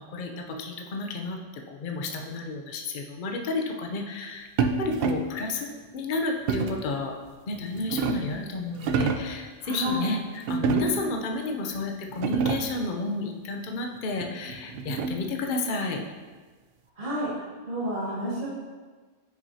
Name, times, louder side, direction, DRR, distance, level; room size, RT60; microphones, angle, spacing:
voice 1, 0.0-7.1 7.5-10.2 10.5-16.0, left 3 dB, 50° left, 2 dB, 0.8 m, -31 dB
sound 1, 4.6-5.4 6.5-6.9 7.5-8.4 8.8-9.4 10.5-11.2 11.7-11.8 12.1-12.8 14.2-15.4, right 5 dB, 65° right, 0.7 m, -28 dB
voice 2, 9.6-10.1 17.0-18.5, equal, 45° right, -9 dB, 2.2 m, -30 dB
9.2 x 6.0 x 2.8 m, 1.4 s
omnidirectional pair, 1.2 m